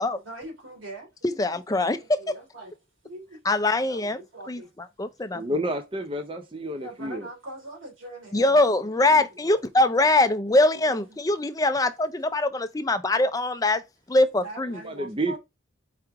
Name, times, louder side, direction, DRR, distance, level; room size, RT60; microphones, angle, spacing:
voice 1, 0.2-1.4 1.7-2.7 3.0-3.4 3.7-4.7 6.8-9.6 10.8-11.2 14.3-15.4, right 2 dB, 85° right, 2.6 m, -43 dB
voice 2, 1.2-2.0 3.5-4.2 4.5-4.6 5.0-5.4 8.3-13.8 14.1-14.8, left 2 dB, 20° left, 0.5 m, -22 dB
voice 3, 5.3-7.3 14.8-15.4, right 1 dB, 25° right, 0.6 m, -30 dB
4.9 x 3.1 x 3.4 m
head